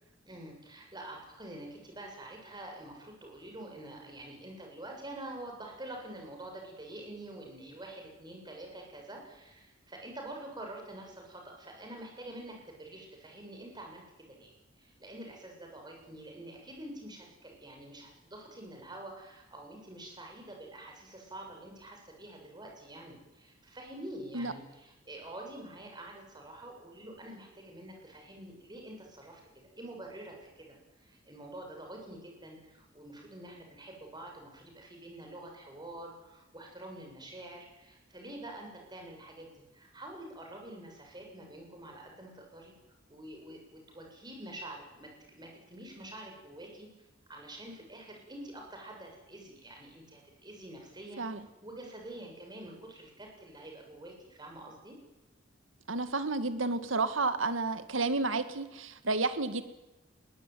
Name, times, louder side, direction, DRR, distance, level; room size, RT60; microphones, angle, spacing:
voice 1, 0.3-29.4 29.8-42.7 43.1-51.2 51.6-55.0, right 1 dB, 20° right, 2 dB, 7.5 m, -47 dB
voice 2, 55.9-59.6, right 3 dB, 75° right, 11 dB, 2.1 m, -31 dB
21.5 x 19.0 x 9.5 m, 1.0 s
head